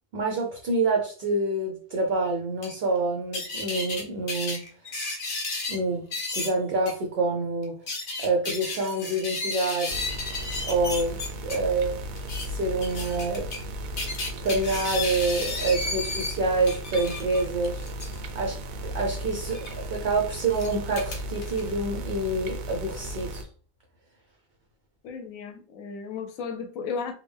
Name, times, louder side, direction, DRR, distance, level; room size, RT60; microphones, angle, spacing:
voice 1, 0.1-4.6 5.7-6.0 6.3-7.7 8.2-10.1 10.6-12.0 12.5-13.5 14.4-17.8 18.3-23.5, right 2 dB, 55° right, 0.8 m, -27 dB
sound 1, 2.6-2.7 3.3-4.0 4.3-5.8 6.1-6.5 6.8-6.9 7.6-11.5 12.2-12.5 12.8-13.6 14.0-16.3 16.6-18.2 19.5-19.7 20.5-21.6, left 2 dB, 45° left, 0.9 m, -33 dB
sound 2, 9.9-23.4, equal, 85° right, 1.0 m, -36 dB
voice 2, 25.0-27.1, left 5 dB, 80° left, 1.1 m, -34 dB
3.5 x 2.2 x 3.4 m
omnidirectional pair, 1.4 m